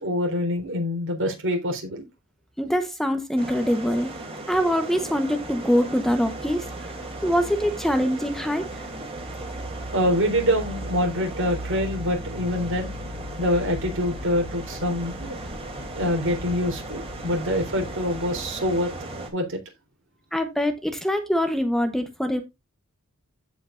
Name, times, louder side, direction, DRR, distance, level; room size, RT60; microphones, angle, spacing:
voice 1, 0.0-2.1 9.9-12.9 13.4-15.4 16.0-18.9 19.3-19.6, equal, 60° right, 3.8 m, -25 dB
voice 2, 2.6-4.1 4.5-6.9 7.2-8.8 20.3-22.4, equal, ahead, 0.9 m, -24 dB
sound 1, 3.4-19.3, right 1 dB, 25° right, 2.8 m, -35 dB
15.5 x 5.2 x 2.5 m
head